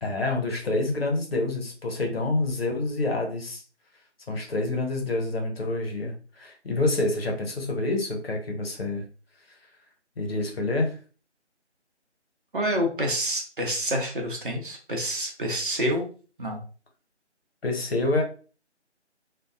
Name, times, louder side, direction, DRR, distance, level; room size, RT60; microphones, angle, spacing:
voice 1, 0.0-3.6 4.3-9.0 10.2-10.9 17.6-18.2, left 2 dB, 55° left, 1 dB, 0.9 m, -27 dB
voice 2, 12.5-16.0 16.4-16.6, equal, 45° right, 1 dB, 0.7 m, -27 dB
2.6 x 2.2 x 2.4 m, 0.38 s
figure-of-eight pair, 155°, 35 cm